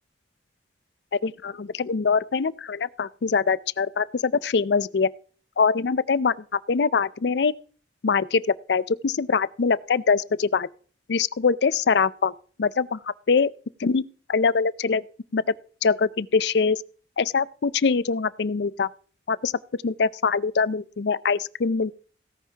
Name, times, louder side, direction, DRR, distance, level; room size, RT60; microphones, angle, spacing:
voice 1, 1.2-5.1 5.6-6.3 6.7-7.5 8.0-8.4 8.7-10.7 11.1-12.3 12.6-13.0 13.3-13.5 13.8-15.0 15.3-15.4 15.8-16.8 17.2-18.9 19.3-19.5 19.8-21.9, left 5 dB, 65° left, 0.5 m, -23 dB
17.0 x 10.0 x 2.9 m
head